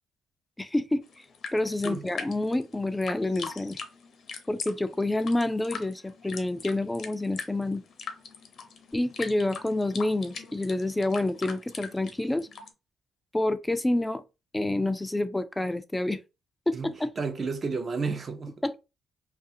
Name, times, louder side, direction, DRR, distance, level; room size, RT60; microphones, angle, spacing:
voice 1, 0.6-1.0 1.5-3.8 4.5-7.8 8.9-12.5 13.3-14.2 14.5-16.2 16.7-17.1 18.6-18.8, left 2 dB, 10° left, 0.3 m, -28 dB
sound 1, 1.0-12.7, left 5 dB, 60° left, 0.6 m, -41 dB
voice 2, 17.2-18.5, right 4 dB, 40° right, 0.5 m, -31 dB
2.4 x 2.3 x 2.7 m
cardioid pair, 90°, 0 cm